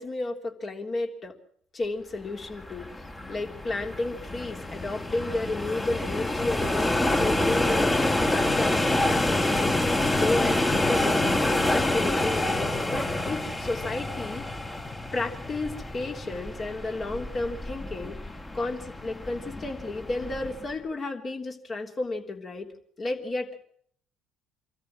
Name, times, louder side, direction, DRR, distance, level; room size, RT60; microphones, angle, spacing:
voice 1, 0.0-1.3 1.7-2.9 3.3-14.5 15.1-18.2 18.5-22.7 23.0-23.6, left 2 dB, 35° left, 2 dB, 3.3 m, -32 dB
sound 1, 2.4-20.7, left 1 dB, 20° left, 2.2 m, -27 dB
sound 2, 4.2-18.1, left 1 dB, 5° right, 1.5 m, -45 dB
25.5 x 13.5 x 7.6 m, 0.63 s
hypercardioid pair, 60°, 0 cm